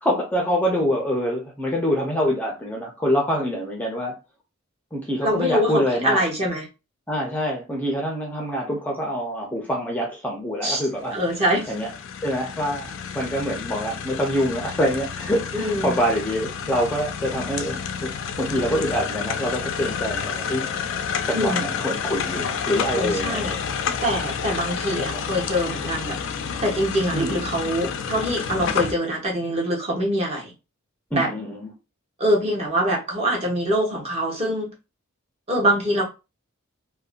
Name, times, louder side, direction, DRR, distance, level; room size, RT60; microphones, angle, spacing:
voice 1, 0.0-4.2 4.9-6.2 7.1-11.2 11.7-11.9 12.2-18.1 18.4-20.6 21.3-23.6 25.0-25.2 27.1-27.4 31.1-31.7, equal, 10° left, 0.5 m, -25 dB
voice 2, 5.2-6.7 10.6-10.8 11.1-11.7 15.5-15.9 21.3-21.7 22.9-23.6 24.0-26.2 26.4-30.5 31.1-31.3 32.2-34.7 35.5-36.0, equal, 30° right, 0.9 m, -24 dB
sound 1, 10.9-28.9, left 6 dB, 65° left, 0.4 m, -30 dB
2.5 x 2.1 x 2.4 m
head